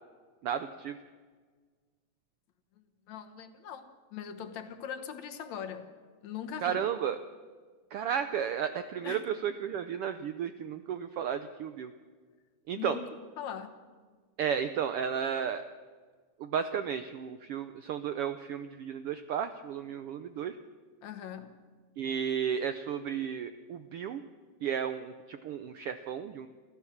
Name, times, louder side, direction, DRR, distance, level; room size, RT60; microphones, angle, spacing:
voice 1, 0.4-1.0 6.6-7.2 7.9-11.9 12.7-13.0 14.4-15.6 16.4-20.6 22.0-24.2 24.6-26.5, right 8 dB, 75° right, 10 dB, 1.3 m, -33 dB
voice 2, 3.1-5.9 6.2-6.8 9.0-9.2 12.8-13.1 13.4-13.7 21.0-21.5, left 8 dB, 70° left, 7 dB, 2.5 m, -40 dB
27.5 x 14.5 x 7.2 m, 1.5 s
omnidirectional pair, 3.4 m